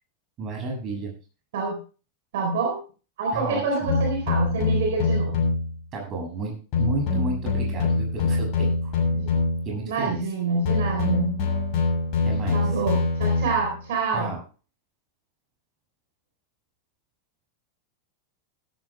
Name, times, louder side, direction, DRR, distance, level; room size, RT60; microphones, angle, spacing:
voice 1, 0.4-1.1 3.3-3.9 5.9-8.9 9.7-10.2 12.2-12.6 14.1-14.4, right 2 dB, 30° right, 1 dB, 7.5 m, -32 dB
voice 2, 2.3-2.8 3.2-5.4 9.1-9.3 9.8-11.3 12.5-14.3, right 4 dB, 55° right, 2 dB, 4.0 m, -27 dB
sound 1, 3.9-5.8 6.7-9.8 10.7-13.8, left 3 dB, 45° left, 6.7 m, -24 dB
17.0 x 13.0 x 2.3 m, 0.35 s
figure-of-eight pair, 90°, 0 cm